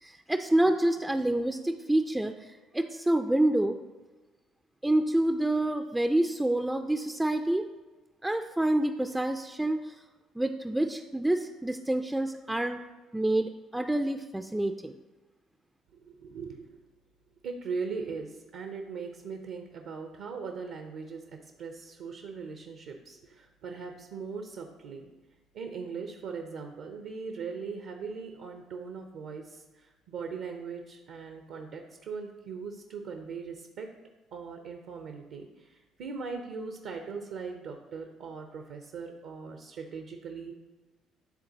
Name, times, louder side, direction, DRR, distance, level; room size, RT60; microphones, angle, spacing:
voice 1, 0.0-3.8 4.8-7.7 8.2-10.0 10.4-12.8 13.1-15.0, right 1 dB, 10° right, 7 dB, 0.3 m, -27 dB
voice 2, 15.9-16.8 17.4-25.1 25.5-33.9 34.3-40.5, right 5 dB, 65° right, 4 dB, 0.6 m, -40 dB
10.5 x 3.8 x 2.8 m, 1.2 s
hypercardioid pair, 50°, 0 cm